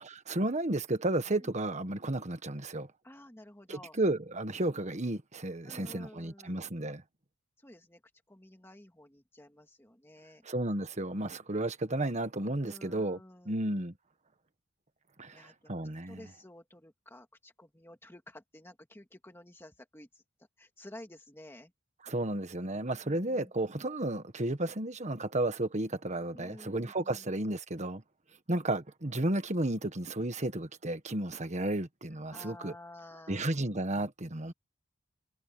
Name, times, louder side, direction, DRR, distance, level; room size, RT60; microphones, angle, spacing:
voice 1, 0.0-2.9 3.7-7.0 10.4-13.2 13.4-13.9 15.2-16.2 22.1-28.0 28.5-32.7 33.3-34.5, right 1 dB, 35° right, 1.5 m, -33 dB
voice 2, 3.0-4.0 5.6-6.6 7.6-8.0 8.3-10.5 12.6-13.6 15.3-21.7 23.0-23.8 26.3-27.2 32.3-33.5, left 1 dB, 10° left, 2.0 m, -52 dB
head